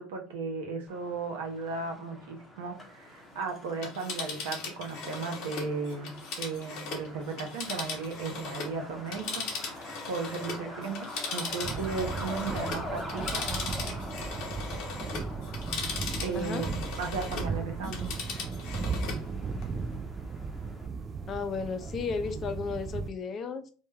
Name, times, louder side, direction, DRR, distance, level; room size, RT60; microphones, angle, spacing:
voice 1, 0.0-11.1 11.3-13.4 16.2-16.7 17.0-18.0, right 4 dB, 85° right, 0.7 m, -35 dB
Truck, 0.9-20.9, left 1 dB, 15° left, 0.8 m, -45 dB
Telephone, 3.7-8.8 9.1-17.5 17.8-19.2 19.6-19.7, left 4 dB, 60° left, 0.9 m, -38 dB
sound 1, 11.6-23.1, right 4 dB, 30° right, 0.4 m, -36 dB
voice 2, 16.3-16.7 21.3-23.7, left 5 dB, 40° left, 0.4 m, -34 dB
2.2 x 2.1 x 3.2 m
hypercardioid pair, 90°, 0 cm